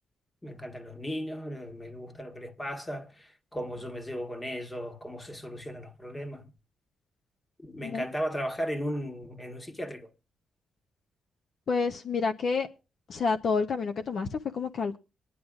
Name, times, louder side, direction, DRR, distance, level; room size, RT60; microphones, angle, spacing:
voice 1, 0.4-6.5 7.6-10.1, equal, 20° left, 1.4 m, -36 dB
voice 2, 11.7-12.7 13.1-15.0, left 4 dB, 60° left, 0.8 m, -29 dB
25.0 x 10.0 x 2.4 m
cardioid pair, 65°, 0 cm